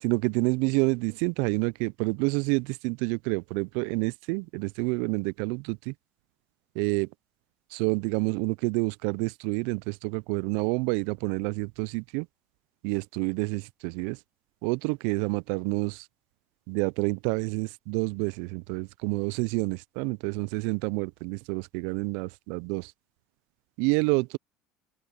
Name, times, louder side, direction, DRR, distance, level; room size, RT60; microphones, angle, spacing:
voice 1, 0.0-5.9 6.7-7.1 7.7-12.3 12.8-14.2 14.6-16.1 16.7-22.9 23.8-24.4, right 30 dB, 65° right, 0.7 m, -28 dB
open air
hypercardioid pair, 70°, 3 cm